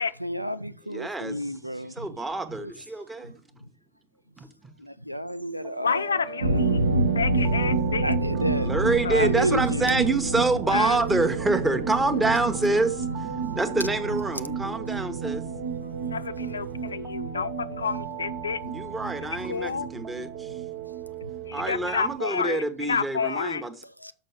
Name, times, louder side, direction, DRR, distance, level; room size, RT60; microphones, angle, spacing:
voice 1, 0.2-2.2 2.5-2.7 3.2-3.3 3.6-3.7 4.8-6.3 8.0-8.7 9.1-10.0 13.8-14.1 14.5-14.6 15.8-15.9 17.0-17.2 18.6-18.7 20.0-20.2 20.5-20.6 21.2-21.3 21.6-21.7 23.8-24.1, right 1 dB, 90° right, 0.4 m, -32 dB
voice 2, 0.9-1.4 2.0-3.3 4.4-4.7 8.6-15.5 18.7-20.5 21.5-23.7, right 2 dB, 10° right, 1.0 m, -27 dB
sound 1, 5.6-22.2, right 9 dB, 35° right, 1.4 m, -40 dB
voice 3, 5.8-6.9 7.1-8.1 9.0-9.2 10.7-11.0 16.1-18.6 19.5-19.9 21.4-23.7, left 6 dB, 70° left, 0.4 m, -29 dB
sound 2, 6.4-21.8 22.0-22.2 22.5-22.6, right 3 dB, 70° right, 0.9 m, -29 dB
6.6 x 5.3 x 7.1 m
figure-of-eight pair, 90°, 0 cm